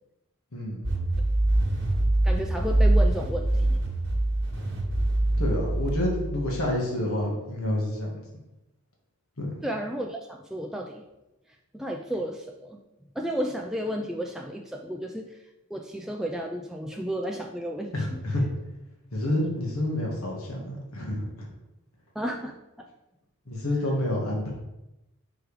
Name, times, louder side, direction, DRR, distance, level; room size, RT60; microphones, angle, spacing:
voice 1, 0.5-0.8 5.4-8.1 9.4-9.6 17.9-18.4 19.1-21.5 23.5-24.5, left 1 dB, 80° left, -2 dB, 1.6 m, -28 dB
sound 1, 0.8-6.7, right 1 dB, 55° right, 1.4 m, -24 dB
voice 2, 2.2-3.8 9.6-11.0 11.7-12.8 13.2-15.4 15.7-17.9 22.2-22.9, equal, ahead, 1 dB, 0.3 m, -32 dB
5.2 x 4.6 x 4.8 m, 0.95 s
head